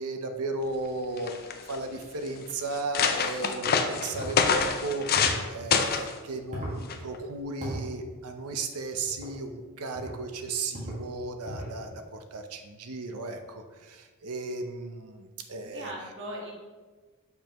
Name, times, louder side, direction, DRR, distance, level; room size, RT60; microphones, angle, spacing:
voice 1, 0.0-15.9, right 3 dB, 85° right, 6 dB, 0.6 m, -35 dB
sound 1, 0.8-0.9 1.2-1.8 2.4-2.5 2.7-5.4 5.7-6.1 6.9-7.2, left 6 dB, 45° left, 0.5 m, -26 dB
sound 2, 4.1-4.4 5.1-5.5 6.5-6.8 7.6-7.8 9.1-9.3 9.9-10.2 10.7-11.0 11.4-11.8, equal, 35° right, 1.7 m, -36 dB
voice 2, 15.6-16.5, equal, 60° right, -3 dB, 1.7 m, -39 dB
6.9 x 5.4 x 3.0 m, 1.4 s
head